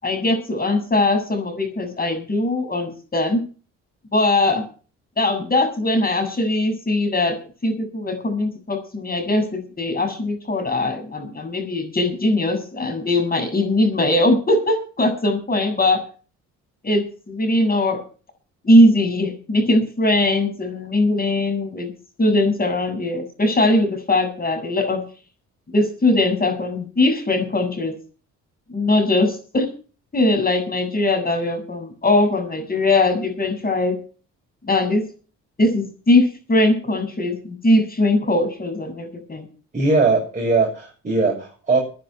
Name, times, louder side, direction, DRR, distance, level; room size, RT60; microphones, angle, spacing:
voice 1, 0.0-3.4 4.1-4.6 5.2-7.4 7.6-16.0 16.8-18.0 18.6-21.9 22.2-25.0 25.7-27.9 28.7-29.7 30.1-33.9 34.6-35.1 35.6-39.5, left 2 dB, 30° left, 7 dB, 7.5 m, -20 dB
voice 2, 39.7-41.8, right 3 dB, 25° right, -2 dB, 6.8 m, -19 dB
17.5 x 9.9 x 5.9 m, 0.38 s
cardioid pair, 90°, 30 cm